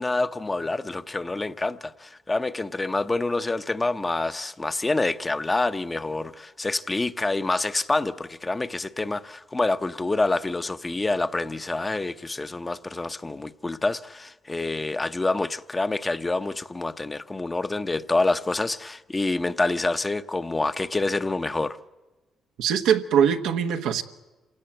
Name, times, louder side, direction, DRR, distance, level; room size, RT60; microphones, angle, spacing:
voice 1, 0.0-21.8, left 2 dB, 20° left, 0.8 m, -27 dB
voice 2, 22.6-24.0, right 8 dB, 90° right, 1.1 m, -22 dB
27.0 x 17.5 x 8.9 m
cardioid pair, 90°, 0 cm